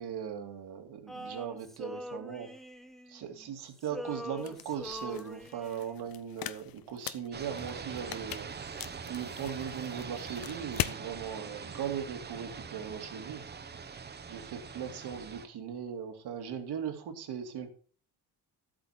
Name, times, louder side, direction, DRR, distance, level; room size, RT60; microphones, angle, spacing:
voice 1, 0.0-2.5 3.1-8.5 9.0-13.4 14.3-17.7, right 8 dB, 75° right, 5 dB, 2.5 m, -39 dB
Male singing, 1.1-3.5 3.8-6.0, equal, ahead, 0.6 m, -43 dB
sound 1, 4.4-11.0, left 12 dB, 60° left, 0.8 m, -41 dB
sound 2, 7.3-15.5, right 5 dB, 25° right, 0.9 m, -43 dB
13.0 x 8.7 x 4.3 m, 0.40 s
cardioid pair, 170°, 39 cm